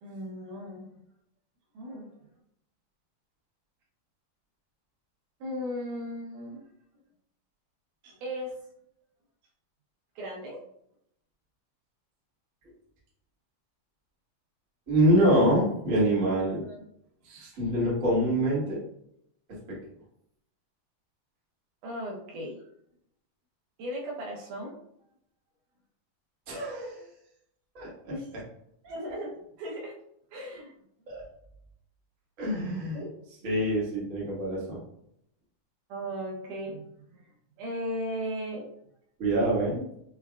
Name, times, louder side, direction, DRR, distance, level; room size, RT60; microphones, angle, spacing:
voice 1, 0.0-0.9 1.7-2.1 5.4-6.6 8.0-8.5 10.2-10.6 16.6-16.8 21.8-22.6 23.8-24.7 28.1-28.3 28.9-29.3 29.6-29.9 30.3-30.7 32.9-33.1 35.9-37.3 37.6-38.7, equal, 80° right, -1 dB, 2.4 m, -36 dB
voice 2, 14.9-16.6 17.3-18.8 26.5-27.0 27.7-28.1 31.1-31.2 32.4-33.0 33.4-34.8 39.2-39.8, equal, 55° right, -7 dB, 0.9 m, -25 dB
5.8 x 2.2 x 2.3 m, 0.74 s
omnidirectional pair, 3.7 m